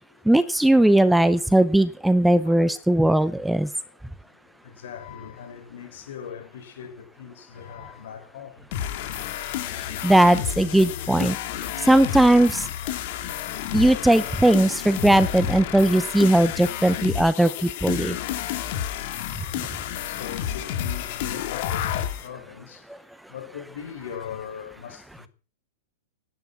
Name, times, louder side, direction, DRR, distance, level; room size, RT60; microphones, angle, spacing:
voice 1, 0.3-3.7 10.0-11.4 11.8-12.7 13.7-18.2 19.4-19.5, right 1 dB, ahead, 0.6 m, -18 dB
voice 2, 4.6-9.0 13.1-13.6 14.2-14.3 15.9-16.2 19.5-22.8 23.3-25.3, left 8 dB, 70° left, 5.3 m, -40 dB
sound 1, 8.7-22.3, left 11 dB, 45° left, 2.7 m, -30 dB
17.0 x 11.0 x 5.9 m
supercardioid pair, 160°, 0 cm